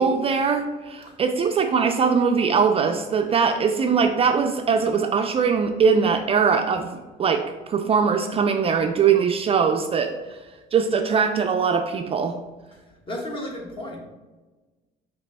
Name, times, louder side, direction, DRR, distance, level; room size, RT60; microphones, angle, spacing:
voice 1, 0.0-10.4 10.7-12.4, right 6 dB, 35° right, 6 dB, 0.3 m, -21 dB
voice 2, 12.7-14.0, left 1 dB, 30° left, -1 dB, 1.3 m, -34 dB
5.0 x 2.9 x 3.3 m, 1.2 s
cardioid pair, 110°, 17 cm